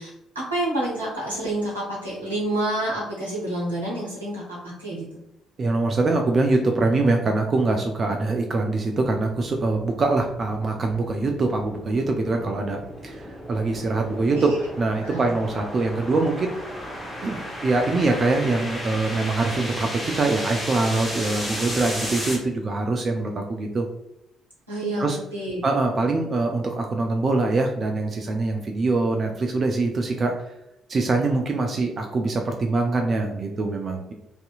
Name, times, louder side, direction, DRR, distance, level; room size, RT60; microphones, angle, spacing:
voice 1, 0.0-5.1 14.3-14.6 15.0-15.3 24.7-25.6, right 1 dB, 85° right, -7 dB, 0.7 m, -28 dB
voice 2, 5.6-16.6 17.2-23.9 25.0-25.2 25.6-30.3 30.9-34.1, right 3 dB, 40° right, 3 dB, 0.3 m, -24 dB
sound 1, 9.3-22.4, equal, 10° left, 0.8 m, -35 dB
2.7 x 2.5 x 2.2 m, 0.86 s
figure-of-eight pair, 45°, 0 cm